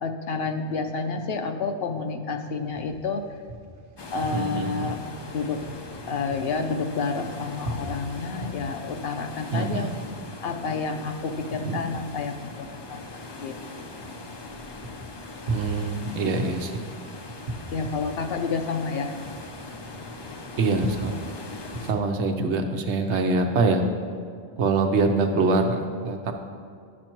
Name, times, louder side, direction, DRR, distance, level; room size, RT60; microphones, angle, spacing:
voice 1, 0.0-3.2 4.1-5.0 5.2-5.6 6.1-9.9 10.4-13.0 13.4-13.5 17.7-19.2, left 4 dB, 65° left, 6 dB, 0.8 m, -29 dB
sound 1, 2.4-21.8, right 1 dB, 55° right, 0.9 m, -42 dB
sound 2, 4.0-21.9, left 2 dB, 40° left, 0.3 m, -41 dB
voice 2, 4.3-4.7 9.5-10.0 11.5-12.0 15.5-16.8 20.6-21.2 21.8-23.9 24.6-26.3, right 3 dB, 85° right, 5 dB, 1.0 m, -24 dB
10.0 x 6.4 x 3.0 m, 2.3 s
omnidirectional pair, 1.1 m